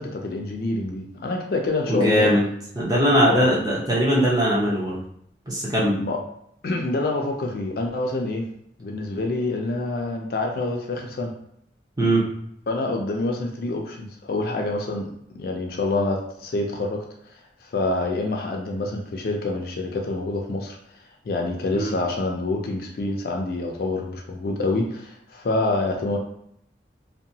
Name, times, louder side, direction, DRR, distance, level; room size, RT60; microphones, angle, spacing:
voice 1, 0.0-2.3 3.2-3.5 6.0-6.2 6.6-8.5 8.8-11.3 12.7-17.0 17.6-20.8 21.3-26.2, left 2 dB, 55° left, 1 dB, 0.4 m, -26 dB
voice 2, 1.9-2.4 2.8-5.0 5.5-5.9 12.0-12.2 21.7-21.9, equal, 20° right, -6 dB, 0.7 m, -20 dB
2.7 x 2.1 x 2.7 m, 0.72 s
head